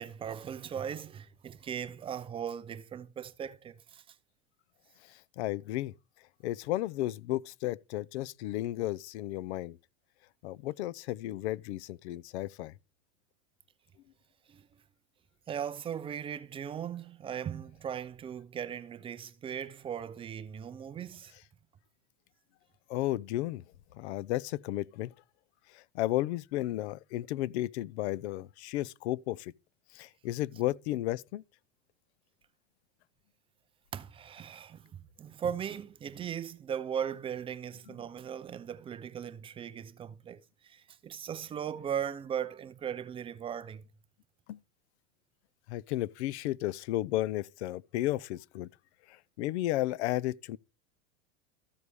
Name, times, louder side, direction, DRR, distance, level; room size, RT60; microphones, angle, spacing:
voice 1, 0.0-4.0 14.5-14.6 15.5-21.3 33.9-43.9, right 8 dB, 15° right, 0.5 m, -38 dB
voice 2, 5.4-5.9 6.4-9.8 10.4-12.7 22.9-23.6 24.0-25.1 25.7-29.5 29.9-31.4 44.5-44.6 45.7-48.7 49.1-50.6, left 15 dB, 65° left, 0.6 m, -33 dB
14.0 x 4.8 x 6.9 m
supercardioid pair, 145°, 36 cm